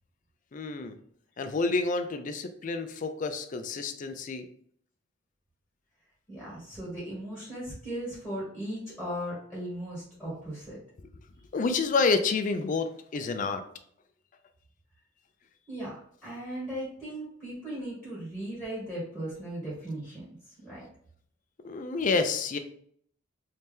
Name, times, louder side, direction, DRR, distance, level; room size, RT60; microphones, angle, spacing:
voice 1, 0.5-1.0 1.4-4.5 11.5-13.6 21.6-22.6, left 4 dB, 40° left, 8 dB, 0.4 m, -29 dB
voice 2, 6.3-10.8 15.7-15.9 16.2-20.2 20.6-20.8, right 1 dB, 5° right, -8 dB, 1.4 m, -37 dB
3.2 x 2.8 x 3.5 m, 0.63 s
head